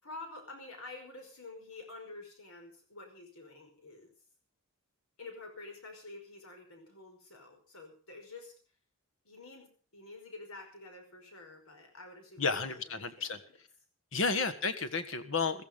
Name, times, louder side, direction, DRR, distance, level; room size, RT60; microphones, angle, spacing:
voice 1, 0.0-4.1 5.2-8.5 9.3-13.6 14.3-14.5, left 2 dB, 80° left, 5 dB, 5.4 m, -49 dB
voice 2, 12.4-13.4 14.1-15.6, left 4 dB, 60° left, 11 dB, 1.5 m, -32 dB
15.5 x 14.5 x 5.3 m, 0.41 s
head